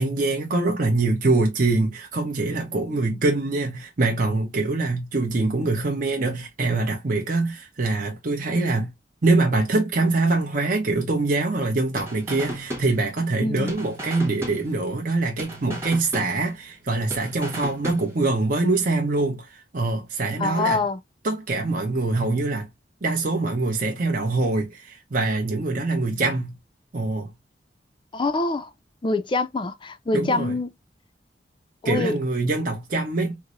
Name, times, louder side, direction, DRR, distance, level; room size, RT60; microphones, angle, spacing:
voice 1, 0.0-8.9 9.2-20.8 21.2-22.7 23.0-26.5 26.9-27.3 30.1-30.5 31.8-33.4, right 3 dB, 50° right, 0.7 m, -24 dB
voice 2, 2.9-3.2 13.4-13.7 20.4-21.0 28.1-28.7 29.0-30.7 31.8-32.2, left 3 dB, 30° left, 0.4 m, -25 dB
sound 1, 12.0-13.4 13.7-15.1 15.4-16.8 17.1-18.4, right 1 dB, 15° right, 1.2 m, -35 dB
4.6 x 2.0 x 2.4 m
head